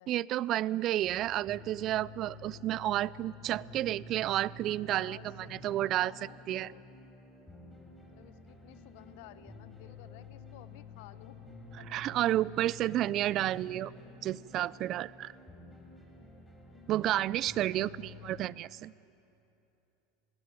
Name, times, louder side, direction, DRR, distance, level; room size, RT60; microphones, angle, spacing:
voice 1, 0.1-6.1 6.5-6.7 11.9-13.9 14.2-15.3 16.9-17.9 18.2-18.9, right 14 dB, 50° right, 22 dB, 0.4 m, -31 dB
sound 1, 1.0-18.5, left 2 dB, 10° left, 4.6 m, -50 dB
voice 2, 4.9-6.9 8.0-11.4 11.8-12.2 17.1-17.2 17.8-18.3, left 15 dB, 70° left, 14 dB, 0.7 m, -54 dB
20.0 x 17.0 x 9.0 m, 2.9 s
hypercardioid pair, 95°, 0 cm